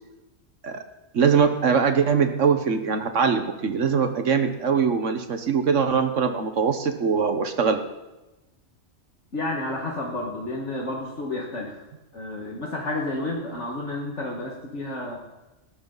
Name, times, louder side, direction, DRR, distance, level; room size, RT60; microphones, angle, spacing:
voice 1, 1.1-7.8, right 6 dB, 75° right, 7 dB, 1.5 m, -22 dB
voice 2, 9.3-11.8 12.1-15.2, left 2 dB, 70° left, -2 dB, 2.2 m, -31 dB
19.5 x 14.0 x 4.0 m, 1.0 s
omnidirectional pair, 1.3 m